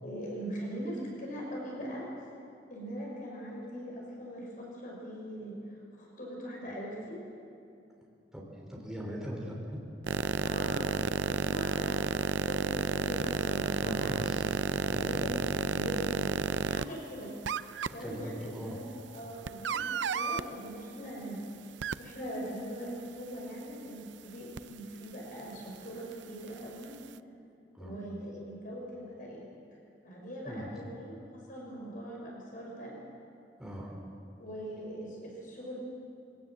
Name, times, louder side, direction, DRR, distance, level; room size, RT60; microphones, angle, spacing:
voice 1, 0.0-2.0 2.7-5.5 6.0-7.2 10.4-14.2 14.8-15.4 15.7-16.3 16.6-17.3 17.9-19.8 20.1-21.4 22.0-26.9 27.8-29.5 30.0-32.9 34.4-35.8, equal, 50° left, -3 dB, 5.8 m, -41 dB
voice 2, 8.3-9.8 13.8-15.3 17.9-18.8 27.7-28.0 30.4-30.7 33.6-33.9, equal, 5° right, -3 dB, 3.4 m, -41 dB
sound 1, 10.1-16.8 17.4-17.9 19.5-20.4 21.8-21.9 24.6-24.7, right 5 dB, 80° right, 0.5 m, -30 dB
23.0 x 17.5 x 7.7 m, 2.6 s
head